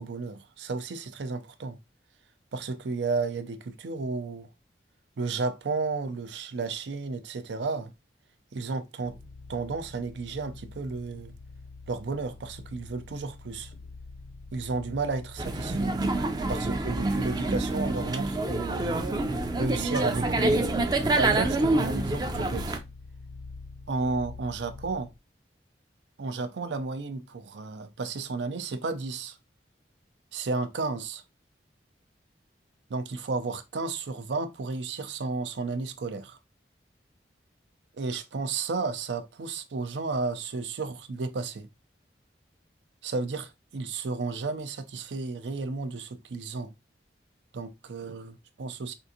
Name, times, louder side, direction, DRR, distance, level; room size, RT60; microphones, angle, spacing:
voice 1, 0.0-1.8 2.5-4.5 5.2-7.9 8.5-9.2 9.5-11.3 11.9-13.7 14.5-15.9 16.5-18.9 19.5-20.6 21.2-22.8 23.9-25.1 26.2-29.4 30.3-31.2 32.9-36.4 38.0-41.7 43.0-46.7 47.5-48.9, right 3 dB, 85° right, 0.5 m, -32 dB
sound 1, 9.0-25.2, left 3 dB, 55° left, 0.4 m, -45 dB
sound 2, 15.4-22.8, right 2 dB, 25° right, 0.4 m, -27 dB
3.6 x 2.5 x 2.7 m
head